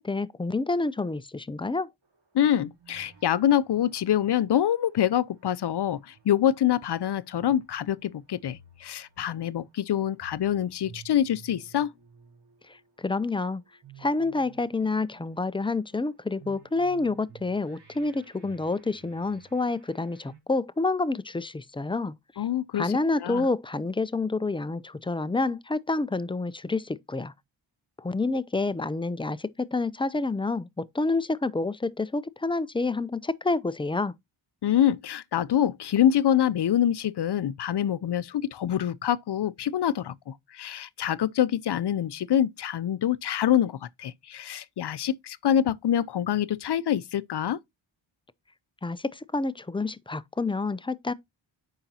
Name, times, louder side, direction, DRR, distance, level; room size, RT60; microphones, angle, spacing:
voice 1, 0.0-1.9 13.0-13.6 14.0-22.1 22.7-27.3 28.0-34.1 48.8-51.1, left 3 dB, 10° left, 0.4 m, -28 dB
sound 1, 2.0-20.4, right 6 dB, 55° right, 3.6 m, -55 dB
voice 2, 2.3-11.9 22.4-22.9 23.2-23.5 34.6-47.6, left 10 dB, 55° left, 0.6 m, -25 dB
8.8 x 5.7 x 2.8 m
wide cardioid pair, 95°, 47 cm